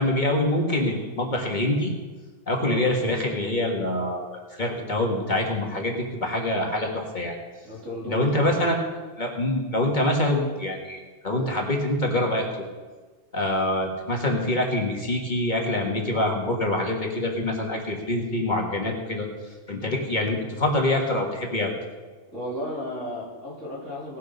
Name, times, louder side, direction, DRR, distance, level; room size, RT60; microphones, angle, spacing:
voice 1, 0.0-1.9 2.5-7.3 8.1-8.8 9.2-12.7 13.3-19.3 19.7-21.7, left 1 dB, 40° left, 1 dB, 1.8 m, -25 dB
voice 2, 2.6-2.9 7.6-8.6 22.3-24.2, equal, 75° right, -4 dB, 3.6 m, -34 dB
18.0 x 6.6 x 5.3 m, 1.4 s
omnidirectional pair, 1.3 m